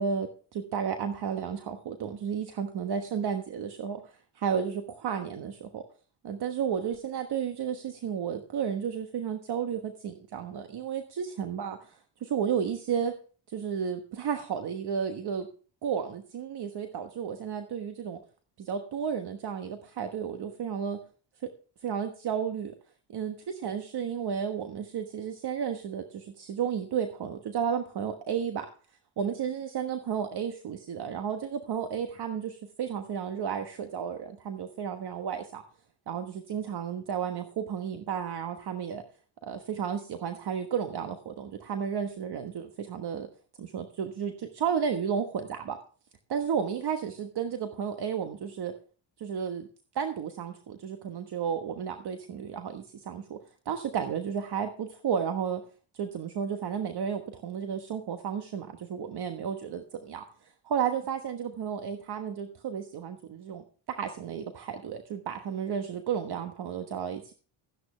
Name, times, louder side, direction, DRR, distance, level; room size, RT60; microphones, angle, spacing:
voice 1, 0.0-5.8 6.2-11.8 12.2-13.1 13.5-15.5 15.8-18.2 18.6-21.0 21.4-21.5 21.8-22.7 23.1-28.7 29.2-35.6 36.1-39.0 39.4-43.3 43.6-45.8 46.3-48.7 49.2-49.7 49.9-53.4 53.6-55.6 55.9-60.2 60.6-63.6 63.9-67.3, right 7 dB, 50° right, 7 dB, 1.4 m, -32 dB
14.0 x 9.8 x 3.3 m, 0.40 s
supercardioid pair, 80°, 49 cm